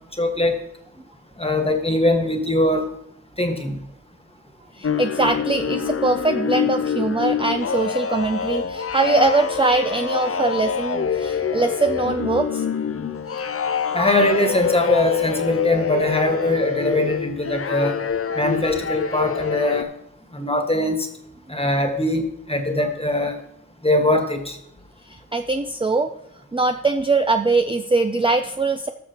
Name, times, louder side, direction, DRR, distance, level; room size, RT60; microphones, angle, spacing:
voice 1, 0.2-0.6 1.4-2.9 3.4-3.8 13.9-18.0 18.3-19.9 20.3-21.1 21.5-23.4 23.8-24.6, left 1 dB, 20° left, 4 dB, 1.5 m, -21 dB
sound 1, 4.8-19.8, left 7 dB, 45° left, 0.5 m, -25 dB
voice 2, 4.8-12.6 25.1-26.1 26.5-28.9, right 3 dB, 15° right, 7 dB, 0.4 m, -22 dB
19.0 x 6.6 x 2.9 m, 0.77 s
wide cardioid pair, 75°, 32 cm